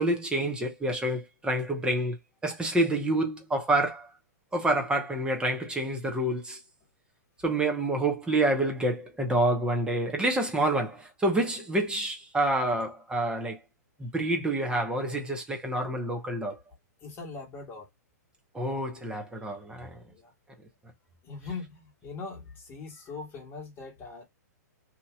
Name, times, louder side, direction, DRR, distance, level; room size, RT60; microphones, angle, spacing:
voice 1, 0.0-2.2 2.4-4.1 4.5-6.6 7.4-13.6 14.0-16.6 18.5-20.0, right 1 dB, 10° right, 0.9 m, -28 dB
voice 2, 17.0-17.9 20.1-20.3 21.2-24.2, left 4 dB, 25° left, 1.5 m, -41 dB
2.9 x 2.6 x 2.4 m
figure-of-eight pair, 110°, 9 cm